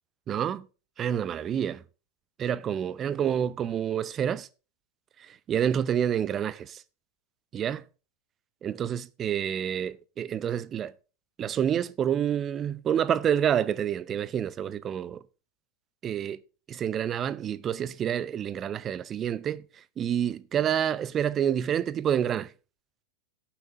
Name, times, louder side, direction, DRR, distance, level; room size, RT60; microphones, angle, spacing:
voice 1, 0.3-0.7 1.0-1.8 2.4-4.5 5.5-6.8 7.5-7.8 8.6-10.9 11.4-15.2 16.0-16.4 16.7-19.6 20.0-22.5, right 9 dB, 25° right, 0.5 m, -28 dB
17.5 x 7.1 x 2.6 m
figure-of-eight pair, 90°, 0 cm